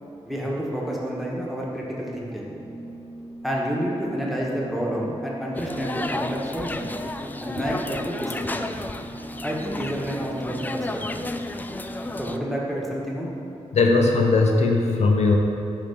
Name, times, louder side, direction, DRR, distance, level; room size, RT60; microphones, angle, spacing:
voice 1, 0.2-2.5 3.4-6.9 7.4-8.6 9.4-10.9 11.1-11.3 12.2-13.3, equal, ahead, -4 dB, 1.4 m, -29 dB
Organ, 2.3-13.0, right 2 dB, 20° right, 1.2 m, -40 dB
sound 1, 5.5-12.4, left 2 dB, 15° left, 0.3 m, -33 dB
voice 2, 13.7-15.3, left 3 dB, 75° left, 1 dB, 0.8 m, -19 dB
10.5 x 3.7 x 5.2 m, 2.8 s
wide cardioid pair, 110°, 12 cm